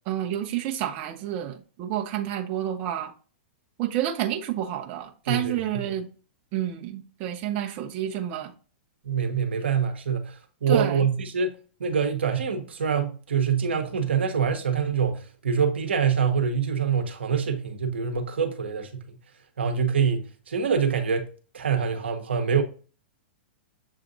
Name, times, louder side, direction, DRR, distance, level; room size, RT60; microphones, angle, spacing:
voice 1, 0.1-3.1 3.8-6.1 6.5-8.5 10.7-11.0, right 11 dB, 40° right, 0.6 m, -29 dB
voice 2, 5.3-5.9 9.0-11.5 11.8-19.0 19.6-21.3 21.5-22.6, right 6 dB, 80° right, 0.9 m, -25 dB
7.0 x 2.5 x 2.6 m
hypercardioid pair, 115°, 6 cm